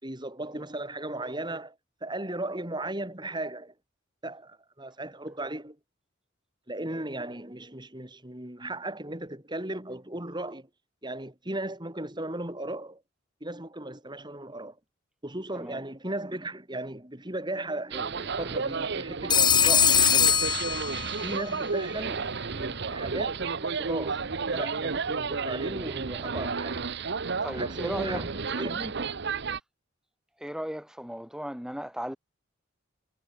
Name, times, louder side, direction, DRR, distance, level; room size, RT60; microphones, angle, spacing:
voice 1, 0.0-1.7 2.0-3.7 4.2-5.8 6.7-10.7 11.0-13.0 13.4-14.8 15.2-20.4 21.1-24.2 24.5-26.8 27.5-29.1, right 1 dB, 20° right, 4.8 m, -36 dB
sound 1, 17.9-29.6, right 5 dB, 60° right, 0.9 m, -32 dB
Telephone, 19.3-21.4, left 7 dB, 20° left, 1.4 m, -22 dB
voice 2, 27.4-28.2 30.4-32.2, equal, 5° right, 4.0 m, -35 dB
head